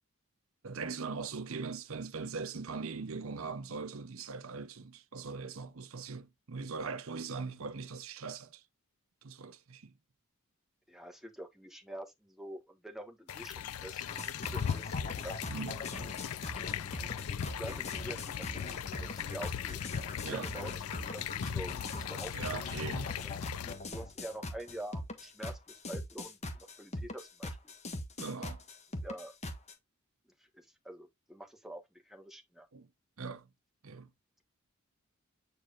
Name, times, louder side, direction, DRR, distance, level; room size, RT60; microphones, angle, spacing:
voice 1, 0.6-8.6 9.2-9.9 15.5-15.8 20.2-20.5 22.3-23.3 28.2-28.6 32.7-32.9 33.2-33.5 33.8-34.1, right 4 dB, 70° right, 0.7 m, -40 dB
voice 2, 10.9-15.0 15.2-15.4 17.6-18.7 19.0-19.8 20.2-20.8 21.1-22.3 23.2-27.7 29.0-29.3 30.4-32.7, right 1 dB, ahead, 1.3 m, -46 dB
sound 1, 13.3-23.7, left 8 dB, 85° left, 0.4 m, -38 dB
sound 2, 14.1-29.7, left 1 dB, 30° left, 1.4 m, -42 dB
8.6 x 4.7 x 2.4 m
head